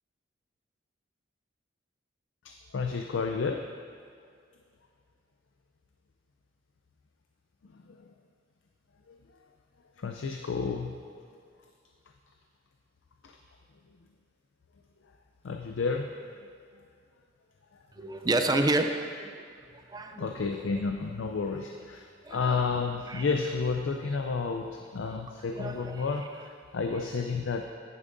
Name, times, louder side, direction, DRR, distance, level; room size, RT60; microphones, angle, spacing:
voice 1, 2.4-3.6 7.9-8.0 9.1-9.2 10.0-11.2 13.2-13.3 15.4-16.1 20.2-27.7, left 4 dB, 70° left, 4 dB, 0.4 m, -31 dB
voice 2, 18.0-19.4 19.9-20.4 22.2-22.8 23.1-23.3 25.5-26.1, right 2 dB, 20° right, 6 dB, 0.4 m, -30 dB
10.0 x 9.0 x 2.6 m, 2.2 s
head